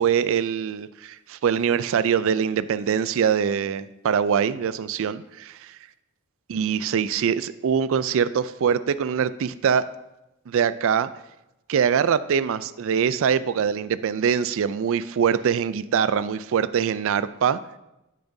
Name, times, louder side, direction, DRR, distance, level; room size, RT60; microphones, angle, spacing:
voice 1, 0.0-5.8 6.5-9.9 10.5-11.1 11.7-17.6, right 7 dB, 65° right, 0.3 m, -23 dB
11.5 x 6.9 x 2.7 m
head